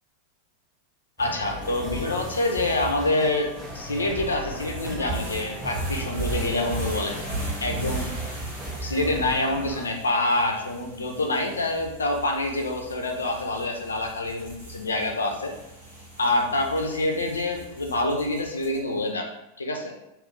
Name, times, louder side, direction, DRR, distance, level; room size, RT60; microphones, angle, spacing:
voice 1, 1.2-7.2 7.6-8.1 8.8-15.5 16.2-19.3 19.6-19.9, left 2 dB, 75° left, 3 dB, 0.5 m, -26 dB
sound 1, 1.2-9.9, right 1 dB, 10° right, 0.9 m, -36 dB
sound 2, 1.6-19.0, right 2 dB, 70° right, 1.3 m, -38 dB
3.0 x 2.5 x 3.2 m, 0.86 s
figure-of-eight pair, 90°, 0 cm